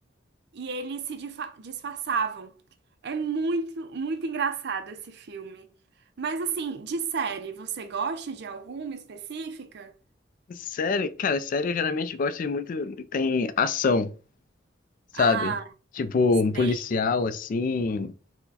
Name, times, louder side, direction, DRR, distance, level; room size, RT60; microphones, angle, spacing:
voice 1, 0.5-2.5 3.0-5.7 6.2-9.9 15.1-15.6 16.5-16.9, right 5 dB, 60° right, 0.5 m, -31 dB
voice 2, 10.5-14.1 15.1-15.5 16.0-18.1, left 4 dB, 45° left, 0.3 m, -25 dB
4.5 x 2.1 x 4.0 m
head